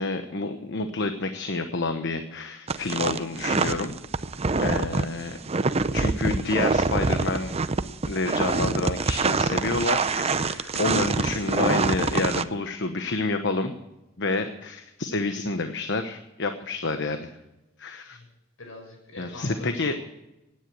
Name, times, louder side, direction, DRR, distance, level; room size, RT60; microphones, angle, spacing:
voice 1, 0.0-4.0 4.6-5.4 5.9-7.5 8.1-13.7 14.2-17.3 17.8-18.2 19.2-20.0, left 3 dB, 60° left, 8 dB, 1.1 m, -29 dB
sound 1, 2.7-12.4, right 4 dB, 30° right, 0.6 m, -25 dB
voice 2, 18.6-20.0, left 2 dB, 75° left, 3 dB, 6.1 m, -43 dB
17.0 x 10.0 x 8.0 m, 0.95 s
head